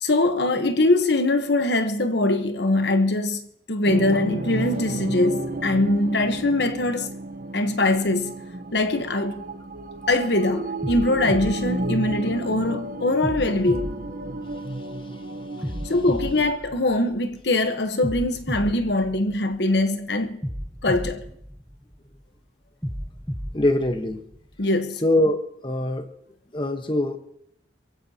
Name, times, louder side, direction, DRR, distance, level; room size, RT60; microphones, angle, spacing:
voice 1, 0.0-3.4 3.7-7.1 7.5-8.4 8.7-9.4 10.1-13.9 15.9-20.4 20.8-21.2 24.6-25.0, left 2 dB, 65° left, 1.1 m, -22 dB
sound 1, 3.9-16.5, right 2 dB, 50° right, 1.0 m, -33 dB
sound 2, 10.0-10.2 10.8-12.6 13.2-15.0 15.6-17.4 18.0-19.8 20.4-22.2 22.8-24.6, equal, 5° left, 0.9 m, -34 dB
voice 2, 23.5-24.2 25.0-26.1 26.5-27.2, left 1 dB, 25° left, 1.2 m, -23 dB
28.5 x 15.5 x 2.9 m
head